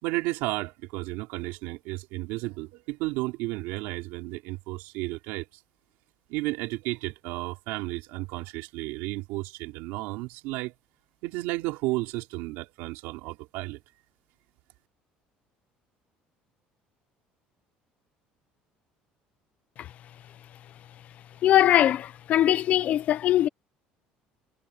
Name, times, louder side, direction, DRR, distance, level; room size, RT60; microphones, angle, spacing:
voice 1, 0.0-5.5 6.3-10.7 11.2-13.8, right 21 dB, 85° right, 4.1 m, -33 dB
voice 2, 21.4-23.5, left 12 dB, 45° left, 0.8 m, -21 dB
cardioid pair, 145°, 3 cm